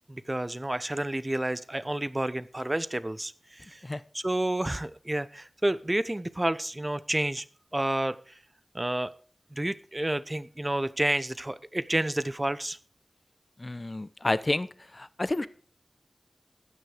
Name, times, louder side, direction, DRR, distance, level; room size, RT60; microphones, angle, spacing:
voice 1, 0.1-3.8 4.1-7.4 7.7-8.2 8.7-9.1 9.5-12.8, right 1 dB, 25° right, 16 dB, 0.8 m, -30 dB
voice 2, 13.6-14.7 14.9-15.5, left 2 dB, 35° left, 15 dB, 0.8 m, -29 dB
14.0 x 9.6 x 5.0 m, 0.42 s
wide cardioid pair, 65°, 0 cm